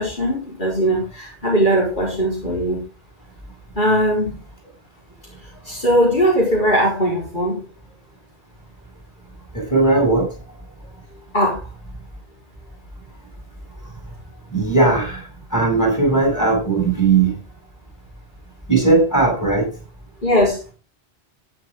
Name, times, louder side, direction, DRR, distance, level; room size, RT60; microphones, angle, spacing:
voice 1, 0.0-2.8 3.8-4.4 5.4-7.7 11.3-11.6 20.2-20.6, equal, 45° left, -3 dB, 5.0 m, -19 dB
voice 2, 9.5-10.3 14.5-17.4 18.7-19.7, right 3 dB, 15° left, 0 dB, 7.8 m, -18 dB
13.5 x 10.5 x 3.8 m, 0.31 s
omnidirectional pair, 1.1 m